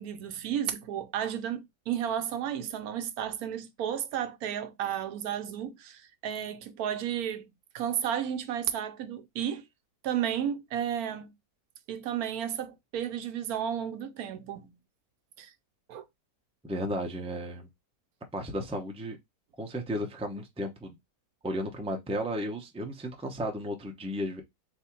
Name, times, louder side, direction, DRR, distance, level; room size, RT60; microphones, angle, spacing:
voice 1, 0.0-9.6 10.0-11.3 11.9-14.7 15.4-15.5 15.9-16.1, right 9 dB, 80° right, 1.1 m, -33 dB
voice 2, 16.6-17.7 18.3-19.2 19.6-21.0 21.4-24.4, equal, 5° right, 0.5 m, -34 dB
3.5 x 2.8 x 4.4 m
omnidirectional pair, 1.6 m